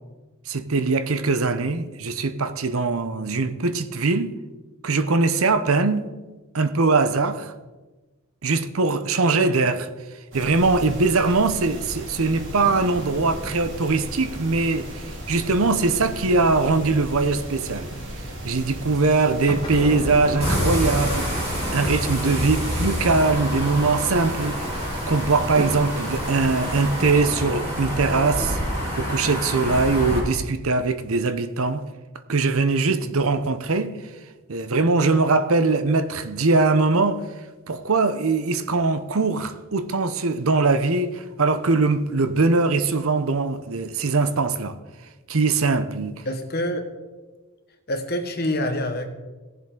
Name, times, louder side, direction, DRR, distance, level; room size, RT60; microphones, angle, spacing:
voice 1, 0.5-4.4 4.8-6.1 6.5-7.5 8.4-9.9 10.3-17.9 18.4-21.3 21.7-24.6 25.1-28.6 29.0-31.8 32.3-34.0 34.5-37.2 37.7-44.8 45.3-46.2, right 3 dB, 75° right, 0.8 m, -21 dB
sound 1, 10.3-27.1, right 1 dB, 55° right, 2.8 m, -36 dB
sound 2, 12.6-15.4 19.5-25.7 27.0-29.4, left 1 dB, 20° left, 1.5 m, -38 dB
sound 3, 20.4-30.2, equal, 30° right, 3.9 m, -27 dB
voice 2, 46.2-46.8 47.9-49.1, left 1 dB, 45° left, 1.3 m, -26 dB
17.5 x 7.5 x 3.8 m
head